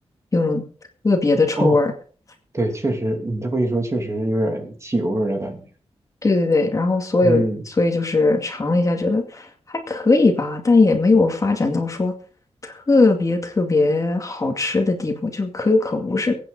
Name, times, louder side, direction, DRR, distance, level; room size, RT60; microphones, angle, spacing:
voice 1, 0.3-0.6 1.0-1.9 6.2-7.4 7.8-9.5 9.9-12.1 12.6-16.3, left 3 dB, 30° left, 4 dB, 2.3 m, -19 dB
voice 2, 2.5-5.6 7.2-7.6, right 1 dB, 25° right, 4 dB, 2.7 m, -23 dB
22.5 x 9.1 x 4.1 m, 0.41 s
wide cardioid pair, 160°, 11 cm